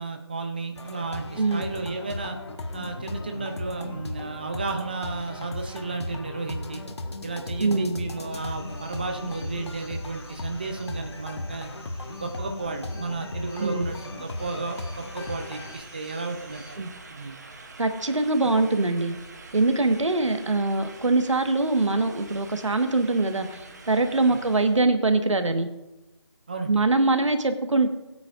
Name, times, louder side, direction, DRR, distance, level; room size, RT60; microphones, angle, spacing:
voice 1, 0.0-2.4 2.7-6.8 7.2-11.7 12.1-16.8 17.1-17.4 24.3-24.4 26.5-26.8, right 3 dB, 20° right, 5 dB, 0.6 m, -33 dB
sound 1, 0.8-15.8, left 2 dB, 60° left, 1.5 m, -36 dB
voice 2, 1.4-1.7 7.6-8.0 13.6-13.9 16.8-16.9 17.8-19.2 19.5-23.6 23.9-25.7 26.7-27.9, right 2 dB, 75° right, 7 dB, 1.5 m, -23 dB
sound 2, 8.3-16.7, left 1 dB, 5° left, 1.3 m, -49 dB
sound 3, 14.0-24.8, right 3 dB, 35° right, 1.1 m, -46 dB
21.0 x 9.1 x 2.5 m, 1.0 s
figure-of-eight pair, 170°, 16 cm